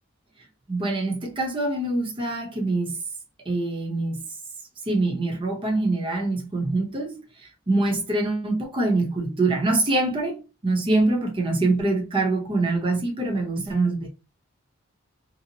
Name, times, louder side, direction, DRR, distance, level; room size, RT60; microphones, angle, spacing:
voice 1, 0.7-3.0 3.5-4.2 4.8-14.1, right 2 dB, 25° right, 0.7 m, -24 dB
2.6 x 2.0 x 2.7 m
head